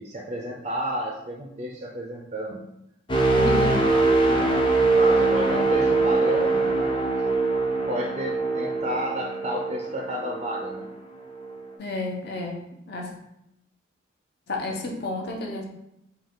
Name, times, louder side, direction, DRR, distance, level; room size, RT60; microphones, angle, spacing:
voice 1, 0.0-2.6 3.3-3.5 4.8-7.3 7.9-10.9, equal, 30° right, -1 dB, 0.5 m, -31 dB
sound 1, 3.1-10.9 11.4-11.6, right 3 dB, 25° left, 0.5 m, -23 dB
voice 2, 3.4-3.8 4.3-4.4 11.8-13.1 14.5-15.6, left 2 dB, 55° left, 0 dB, 0.8 m, -31 dB
5.3 x 2.3 x 3.7 m, 0.80 s
head